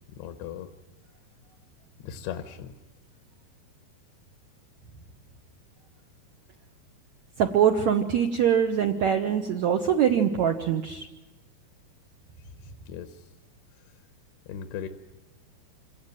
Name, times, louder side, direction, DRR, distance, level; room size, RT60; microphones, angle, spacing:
voice 1, 0.1-0.7 2.0-2.7 12.4-13.3 14.5-14.9, left 9 dB, 90° left, 7 dB, 3.1 m, -38 dB
voice 2, 7.4-11.1, right 8 dB, 75° right, 5 dB, 1.7 m, -23 dB
27.0 x 17.5 x 9.3 m, 1.1 s
omnidirectional pair, 4.7 m